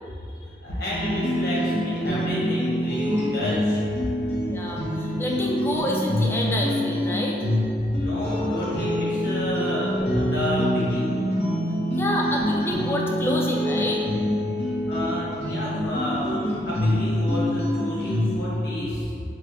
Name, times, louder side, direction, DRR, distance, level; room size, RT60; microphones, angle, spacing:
voice 1, 0.1-3.8 7.9-11.1 14.8-19.1, left 1 dB, 80° left, -8 dB, 1.4 m, -31 dB
sound 1, 0.9-18.5, equal, 35° left, 0.8 m, -25 dB
voice 2, 4.5-7.4 12.0-14.0, left 1 dB, 15° left, -2 dB, 0.3 m, -28 dB
4.7 x 2.1 x 3.8 m, 2.5 s
head